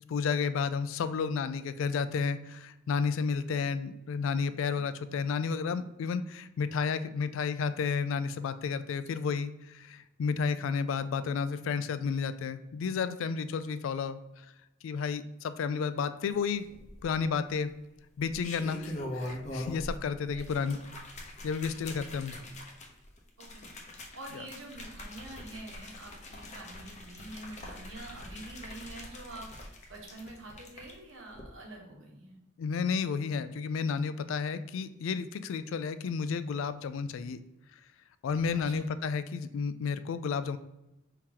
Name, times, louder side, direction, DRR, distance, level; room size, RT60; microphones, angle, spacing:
voice 1, 0.1-14.5 14.8-16.6 17.0-17.7 18.2-20.8 21.4-22.3 24.3-24.4 32.6-37.4 38.2-40.6, left 5 dB, 70° left, 12 dB, 0.3 m, -32 dB
sound 1, 16.7-17.3 18.2-20.0 20.3-30.9 31.3-31.4, left 1 dB, 35° left, 0.7 m, -43 dB
voice 2, 23.4-32.4 38.5-38.9, right 2 dB, 65° right, 0 dB, 1.1 m, -47 dB
4.6 x 3.8 x 2.8 m, 0.92 s
head